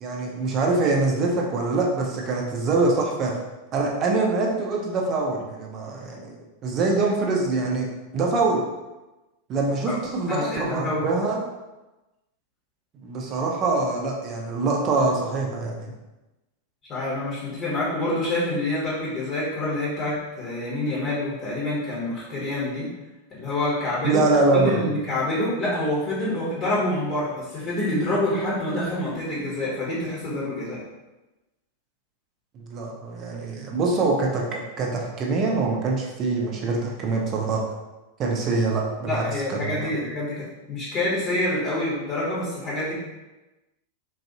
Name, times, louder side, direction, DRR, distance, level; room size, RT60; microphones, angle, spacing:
voice 1, 0.0-3.3 3.7-8.6 9.5-11.4 13.0-15.9 24.0-24.9 32.5-37.6 38.2-39.9, right 3 dB, 35° right, 0 dB, 0.7 m, -24 dB
voice 2, 10.3-11.0 16.9-22.9 23.3-24.2 24.5-30.8 39.0-42.9, left 1 dB, 35° left, -7 dB, 1.1 m, -27 dB
3.9 x 2.6 x 2.7 m, 1.1 s
figure-of-eight pair, 90°, 0 cm